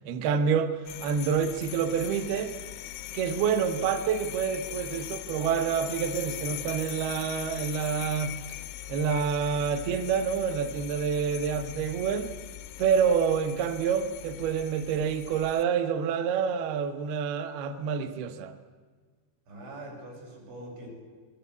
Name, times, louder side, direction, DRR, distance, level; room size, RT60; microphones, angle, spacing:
voice 1, 0.0-2.5 3.1-8.3 8.9-12.3 12.8-18.6, right 7 dB, 70° right, 2.7 m, -27 dB
sound 1, 0.9-15.6, left 14 dB, 90° left, 3.4 m, -40 dB
voice 2, 19.5-20.9, right 1 dB, 90° right, 10.0 m, -43 dB
26.0 x 22.0 x 8.3 m
omnidirectional pair, 5.4 m